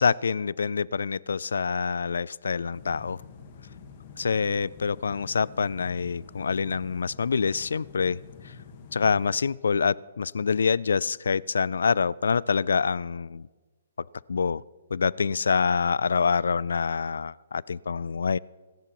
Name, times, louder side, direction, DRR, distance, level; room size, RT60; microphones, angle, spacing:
voice 1, 0.0-3.2 4.2-8.5 8.9-13.5 14.3-14.6 14.9-18.4, left 5 dB, 90° left, 23 dB, 0.3 m, -26 dB
sound 1, 2.7-9.4, left 6 dB, 30° left, 1.4 m, -47 dB
28.0 x 10.5 x 3.0 m, 1.3 s
hypercardioid pair, 175°, 0 cm